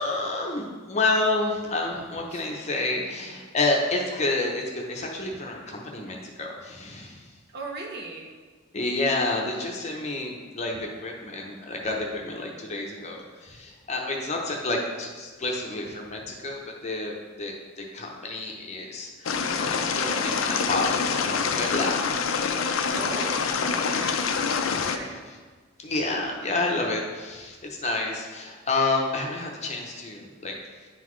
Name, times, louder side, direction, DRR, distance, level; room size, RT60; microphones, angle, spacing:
voice 1, 0.0-7.3 8.7-22.1 25.8-30.6, left 2 dB, 35° left, 0 dB, 0.7 m, -29 dB
voice 2, 7.5-8.3 18.9-19.1 22.9-24.2 24.7-25.2 30.2-30.4, right 2 dB, 55° right, 0 dB, 0.9 m, -39 dB
sound 1, 19.3-25.0, left 5 dB, 85° left, 0.5 m, -26 dB
10.0 x 4.0 x 3.1 m, 1.4 s
head